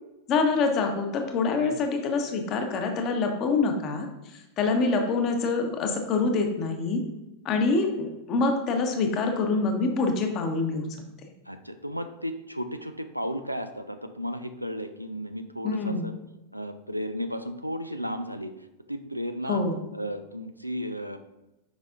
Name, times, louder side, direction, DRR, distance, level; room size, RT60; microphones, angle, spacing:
voice 1, 0.3-4.1 4.6-7.0 7.4-11.1 15.6-16.1 19.5-19.8, left 3 dB, 35° left, 4 dB, 1.0 m, -25 dB
voice 2, 11.5-16.1 16.5-19.6 19.9-21.2, equal, 90° right, 8 dB, 0.4 m, -34 dB
7.1 x 5.3 x 2.5 m, 0.94 s
figure-of-eight pair, 90°, 0 cm